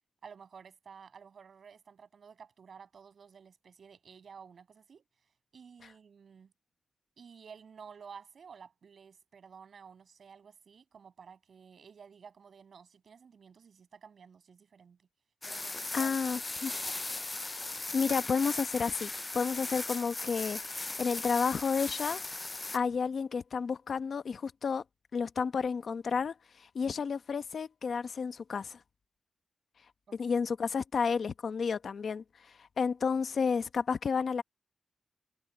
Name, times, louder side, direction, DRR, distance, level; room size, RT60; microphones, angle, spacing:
voice 1, 0.2-5.0 5.5-6.5 7.2-15.0 15.4-16.2 16.7-17.3 30.1-30.3, right 6 dB, 90° right, 8.0 m, -53 dB
sound 1, 15.4-22.8, left 2 dB, 25° left, 0.3 m, -38 dB
voice 2, 15.9-16.7 17.7-22.2 22.7-24.8 25.1-28.8 30.2-32.2 32.8-34.4, left 5 dB, 85° left, 1.0 m, -31 dB
wide cardioid pair, 145°, 0 cm